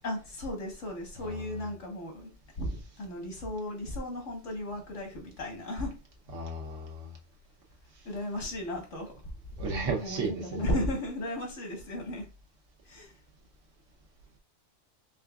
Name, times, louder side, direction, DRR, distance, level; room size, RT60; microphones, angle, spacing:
voice 1, 0.0-6.0 8.0-9.1 9.6-9.7 10.0-12.3 12.8-13.2, left 1 dB, 85° left, 1.7 m, -35 dB
voice 2, 6.3-7.1 9.6-10.7, right 3 dB, 90° right, 1.3 m, -34 dB
4.5 x 3.5 x 2.3 m
omnidirectional pair, 1.2 m